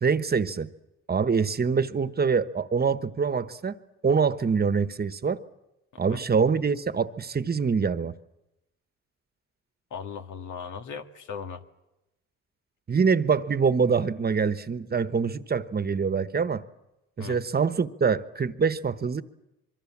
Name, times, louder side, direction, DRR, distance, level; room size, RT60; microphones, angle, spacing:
voice 1, 0.0-0.7 1.1-3.8 4.0-5.4 6.0-8.1 12.9-16.6 17.2-19.2, right 5 dB, 30° right, 13 dB, 1.2 m, -25 dB
voice 2, 9.9-11.6 17.2-17.4, left 6 dB, 80° left, 7 dB, 1.9 m, -37 dB
25.5 x 23.5 x 7.4 m, 0.92 s
cardioid pair, 90°, 30 cm